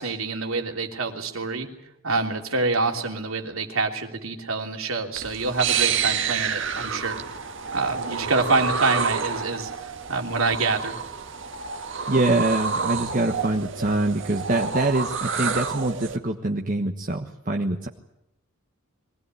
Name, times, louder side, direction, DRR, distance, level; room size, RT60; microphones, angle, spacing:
voice 1, 0.0-1.7 2.0-7.2 7.7-11.0, right 3 dB, 80° right, 2 dB, 3.2 m, -26 dB
sound 1, 5.1-16.2, right 6 dB, 60° right, 1.8 m, -29 dB
voice 2, 12.1-17.9, right 2 dB, 40° right, 2 dB, 1.4 m, -24 dB
23.5 x 17.5 x 9.8 m, 0.83 s
head